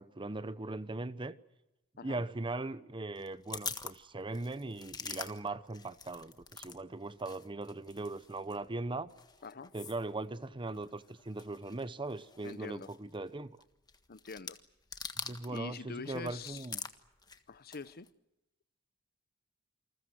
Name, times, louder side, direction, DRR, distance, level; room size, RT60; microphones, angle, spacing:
voice 1, 0.0-1.3 2.0-9.1 9.7-13.5 15.2-16.8, right 2 dB, 25° right, 0.8 m, -39 dB
sound 1, 3.1-6.8 7.0-15.7 16.0-18.1, left 5 dB, 20° left, 1.5 m, -46 dB
voice 2, 12.4-12.9 14.1-14.6 15.5-16.7 17.5-18.1, left 4 dB, 45° left, 0.8 m, -44 dB
28.5 x 20.5 x 7.9 m
head